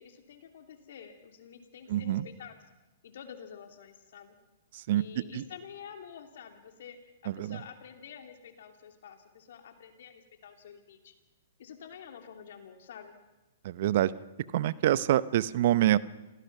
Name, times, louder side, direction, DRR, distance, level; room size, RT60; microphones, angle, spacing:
voice 1, 0.0-2.6 3.0-4.4 4.9-11.1 11.6-13.2, left 7 dB, 65° left, 6 dB, 2.9 m, -48 dB
voice 2, 1.9-2.2 4.7-5.0 5.3-5.4 7.3-7.6 13.6-14.1 14.5-16.0, right 13 dB, 55° right, 18 dB, 0.7 m, -26 dB
27.0 x 17.5 x 6.0 m, 1.1 s
hypercardioid pair, 125°, 0 cm